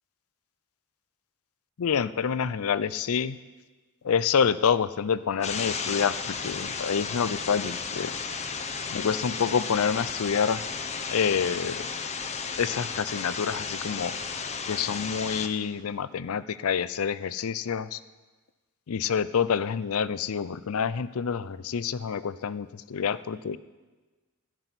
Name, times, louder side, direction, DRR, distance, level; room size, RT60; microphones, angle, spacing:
voice 1, 1.8-3.4 4.0-8.1 8.9-10.6 11.1-11.9 12.6-14.1 14.7-18.0 18.9-23.6, left 7 dB, 65° left, 16 dB, 0.5 m, -27 dB
sound 1, 5.4-15.5, left 5 dB, 30° left, 0.7 m, -34 dB
13.5 x 6.0 x 9.7 m, 1.3 s
head